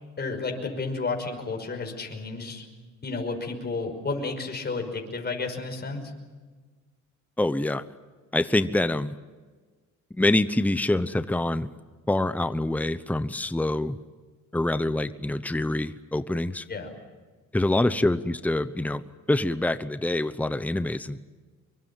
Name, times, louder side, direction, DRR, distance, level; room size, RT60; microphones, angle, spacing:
voice 1, 0.2-2.6 3.0-6.1 16.7-16.9, left 3 dB, 35° left, 3 dB, 5.6 m, -32 dB
voice 2, 7.4-7.8 8.3-9.1 10.1-11.7 12.1-14.0 14.5-16.6 17.5-19.0 19.3-21.2, left 1 dB, 5° left, 12 dB, 1.0 m, -25 dB
25.5 x 23.5 x 7.4 m, 1.4 s
cardioid pair, 90°, 30 cm